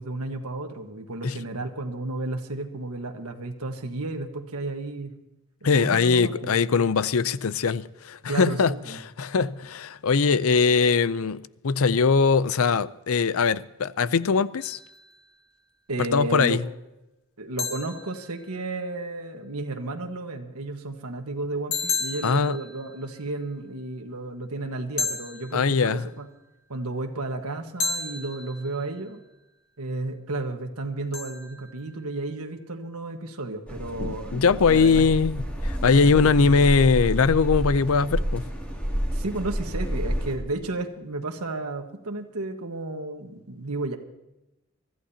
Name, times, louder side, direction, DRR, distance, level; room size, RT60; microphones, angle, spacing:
voice 1, 0.0-5.1 5.8-6.6 8.3-9.0 15.9-16.6 17.4-26.3 26.7-29.2 29.8-35.1 35.8-36.6 39.1-44.0, right 2 dB, 85° right, 1.4 m, -33 dB
voice 2, 5.6-8.7 9.2-14.8 16.1-16.6 22.2-22.6 25.5-26.0 34.0-38.4, left 5 dB, 75° left, 0.5 m, -21 dB
sound 1, 14.6-15.4 17.6-19.0 21.7-23.5 25.0-26.4 27.8-29.2 31.1-32.4, left 4 dB, 45° left, 1.8 m, -34 dB
sound 2, 33.7-40.3, equal, 5° left, 2.4 m, -29 dB
24.0 x 14.5 x 2.8 m
head